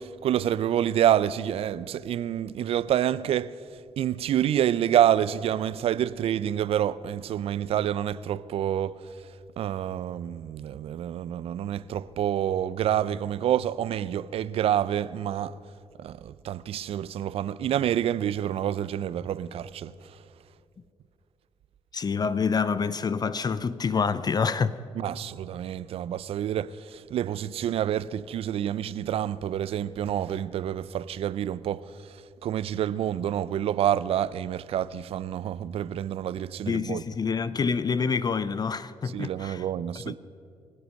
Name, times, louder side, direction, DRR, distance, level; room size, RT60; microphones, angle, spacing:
voice 1, 0.0-3.6 4.0-9.0 9.6-15.6 16.0-20.2 25.0-37.0 39.1-40.1, right 10 dB, 70° right, 0.4 m, -28 dB
voice 2, 21.9-24.8 36.7-39.7 40.1-40.2, left 5 dB, 40° left, 0.6 m, -27 dB
24.0 x 8.0 x 6.4 m
supercardioid pair, 65°, 10 cm